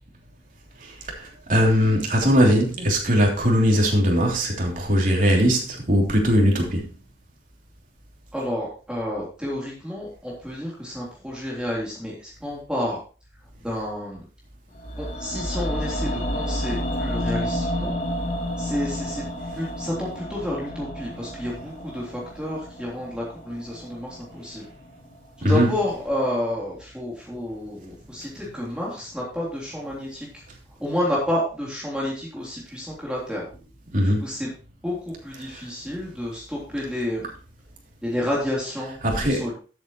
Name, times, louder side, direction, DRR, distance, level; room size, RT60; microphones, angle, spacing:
voice 1, 1.2-6.8 25.4-25.7 33.9-34.3 39.0-39.5, equal, 50° right, 0 dB, 3.1 m, -20 dB
voice 2, 8.3-13.0 13.6-14.2 15.0-17.9 18.6-19.2 19.5-24.6 25.4-30.3 30.8-33.4 34.0-34.5 34.8-37.3 38.0-39.5, left 1 dB, 5° right, -6 dB, 3.4 m, -30 dB
sound 1, 14.7-24.9 25.1-25.2, equal, 45° left, 2.8 m, -30 dB
13.0 x 8.2 x 3.1 m, 0.36 s
head